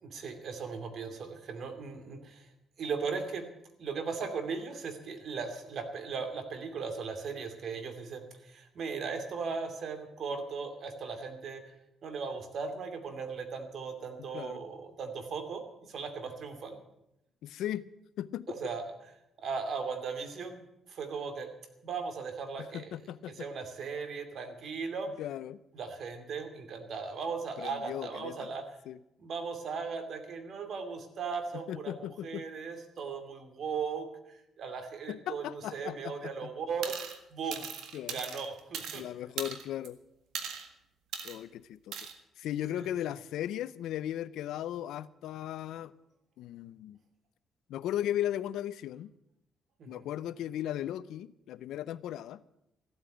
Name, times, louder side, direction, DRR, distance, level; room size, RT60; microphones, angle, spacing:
voice 1, 0.0-2.5 2.8-3.5 3.8-11.7 12.0-16.8 18.5-18.8 19.4-20.6 20.9-21.5 21.8-23.0 23.3-25.1 25.7-28.7 29.2-37.0 37.3-37.7 38.0-39.0 42.7-43.2 49.8-50.1, right 5 dB, 60° right, 7 dB, 2.6 m, -38 dB
voice 2, 14.2-14.6 17.4-17.9 18.2-18.6 22.6-23.3 25.2-25.6 27.6-28.4 28.9-29.0 31.5-32.5 35.1-36.5 37.9-38.2 38.9-40.0 41.2-42.0 42.4-45.9 46.4-47.0 47.7-49.1 49.9-52.4, left 12 dB, 85° left, 17 dB, 0.6 m, -37 dB
sound 1, 36.8-37.2 37.5-39.0 39.4-39.9 40.3-40.7 41.1-41.4 41.9-42.1, right 7 dB, 80° right, 1.8 m, -39 dB
15.0 x 8.8 x 9.1 m, 0.84 s
cardioid pair, 90°, 0 cm